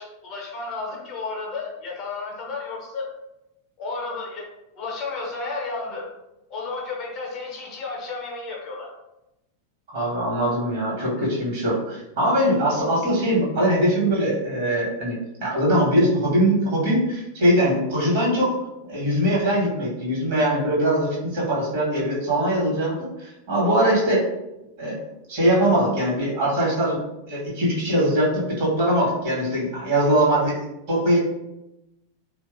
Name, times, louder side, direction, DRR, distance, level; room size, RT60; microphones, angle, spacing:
voice 1, 0.0-3.1 3.8-4.5 4.8-6.1 6.5-8.9 11.0-11.1, left 3 dB, 35° left, -2 dB, 0.7 m, -32 dB
voice 2, 9.9-18.5 18.9-24.3 24.8-25.0 25.3-27.0 27.3-31.2, right 1 dB, 50° right, -5 dB, 1.2 m, -22 dB
2.8 x 2.2 x 2.4 m, 0.92 s
figure-of-eight pair, 90°, 0 cm